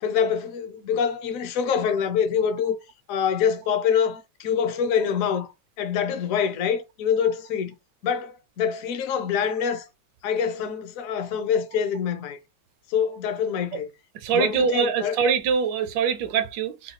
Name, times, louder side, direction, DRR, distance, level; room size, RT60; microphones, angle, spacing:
voice 1, 0.0-2.8 3.1-5.5 5.8-7.7 8.0-9.9 10.2-12.4 12.9-13.9 14.3-15.2, left 7 dB, 65° left, 0.8 m, -25 dB
voice 2, 14.1-16.9, right 6 dB, 70° right, 1.1 m, -24 dB
3.9 x 2.3 x 2.9 m
omnidirectional pair, 2.1 m